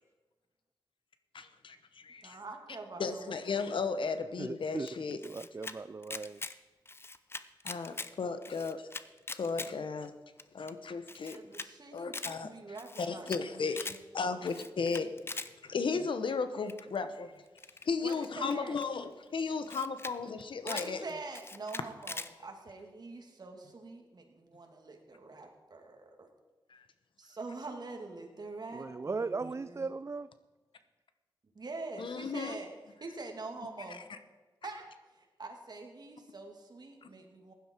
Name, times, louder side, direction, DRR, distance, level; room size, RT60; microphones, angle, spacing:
voice 1, 1.3-2.4 3.0-5.2 7.6-8.9 9.3-10.1 10.5-11.4 11.9-12.5 13.0-13.9 14.1-17.3 17.8-21.0 26.7-26.8 32.0-32.6 33.9-34.2 37.0-37.1, left 4 dB, 75° left, 10 dB, 1.0 m, -35 dB
voice 2, 2.2-3.6 11.3-12.2 12.4-14.0 14.3-14.5 18.0-18.8 20.6-26.3 27.2-29.9 31.5-32.7 33.0-34.0 34.6-34.8 35.1-37.5, right 3 dB, 55° right, 3 dB, 2.2 m, -45 dB
voice 3, 4.4-4.9 5.2-6.4 28.7-30.3, right 4 dB, 35° right, 13 dB, 0.4 m, -37 dB
Camera, 4.9-5.7 6.0-6.5 6.8-8.1 8.4-9.7 10.0-10.1 10.4-10.5 10.7-10.8 11.1-11.7 12.0-12.3 12.7-13.4 13.7-14.0 14.4-15.5 16.7-17.0 17.6-18.8 19.4-19.5 19.7-20.1 20.4-20.9 21.3-22.3, left 3 dB, 30° left, 0.6 m, -41 dB
15.5 x 11.0 x 4.5 m, 1.2 s
cardioid pair, 70°, 9 cm